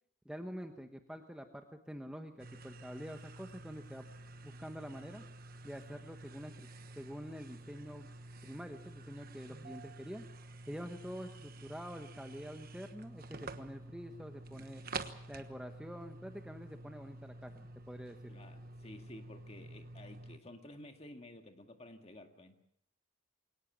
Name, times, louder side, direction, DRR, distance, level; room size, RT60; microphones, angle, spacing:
voice 1, 0.2-4.0 4.4-5.2 5.6-6.7 7.0-8.1 8.4-10.2 10.7-14.8 15.3-18.3, equal, 5° right, 5 dB, 1.1 m, -46 dB
sound 1, 2.4-20.4, right 2 dB, 45° right, 1.2 m, -49 dB
voice 2, 18.3-22.6, left 1 dB, 30° left, 5 dB, 2.0 m, -52 dB
22.5 x 18.5 x 7.4 m, 0.70 s
head